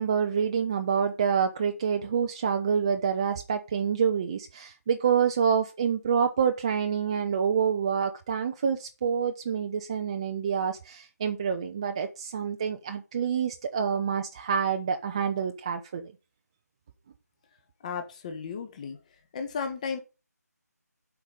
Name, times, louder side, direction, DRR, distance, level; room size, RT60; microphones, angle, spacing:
voice 1, 0.0-16.1, right 7 dB, 20° right, 0.5 m, -27 dB
voice 2, 17.8-19.0 19.3-20.0, left 5 dB, 25° left, 1.4 m, -34 dB
8.1 x 5.3 x 6.8 m
figure-of-eight pair, 155°, 9 cm